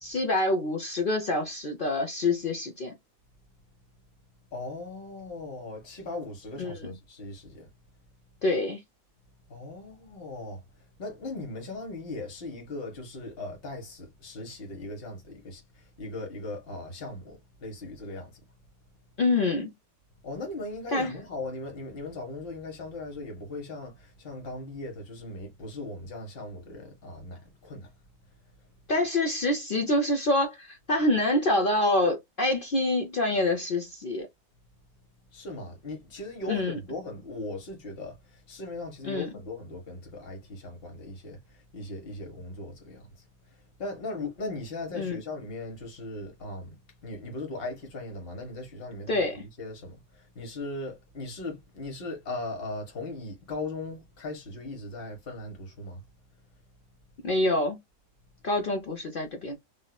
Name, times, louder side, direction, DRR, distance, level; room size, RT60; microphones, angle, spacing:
voice 1, 0.0-3.0 6.6-6.9 8.4-8.8 19.2-19.7 20.9-21.2 28.9-34.3 36.5-36.8 39.0-39.3 45.0-45.2 49.1-49.5 57.2-57.8 58.4-59.5, left 2 dB, 60° left, 0.5 m, -26 dB
voice 2, 4.5-7.7 9.5-10.6 11.0-18.4 20.2-27.9 35.3-46.8 47.0-56.0, left 2 dB, 40° left, 1.3 m, -38 dB
3.6 x 2.6 x 2.3 m
omnidirectional pair, 1.7 m